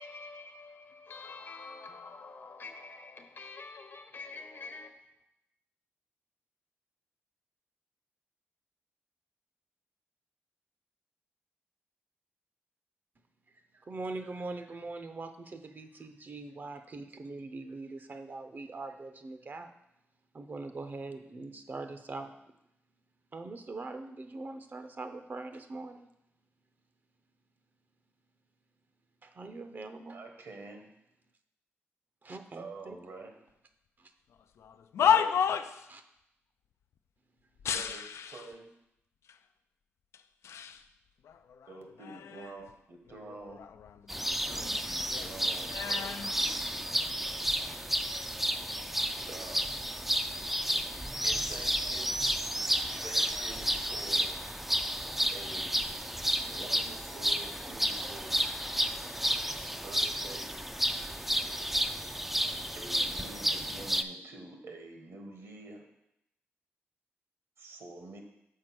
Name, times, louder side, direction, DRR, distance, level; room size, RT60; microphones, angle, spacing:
voice 1, 0.0-4.9, left 4 dB, 55° left, 0.9 m, -46 dB
voice 2, 13.9-19.7 20.3-22.3 23.3-26.1 29.2-30.2 32.2-33.0 34.0-34.1 35.9-36.0, right 3 dB, 45° right, 0.6 m, -42 dB
voice 3, 30.1-30.9 32.5-33.3 35.0-35.5 37.6-38.7 41.7-43.6 44.4-46.1 49.3-49.7 51.2-52.2 53.0-54.3 55.3-55.8 56.4-58.4 59.8-60.5 62.7-65.8 67.6-68.2, right 3 dB, 70° right, 1.3 m, -47 dB
sound 1, 34.6-35.9 37.6-38.5 39.3-39.4 40.1-40.8 41.2-42.7 43.1-44.7 45.0-47.1 47.9-48.2, left 8 dB, 85° left, 0.3 m, -32 dB
sound 2, 44.1-64.0, equal, 5° right, 0.3 m, -32 dB
6.5 x 4.3 x 6.0 m
cardioid pair, 85°, 5 cm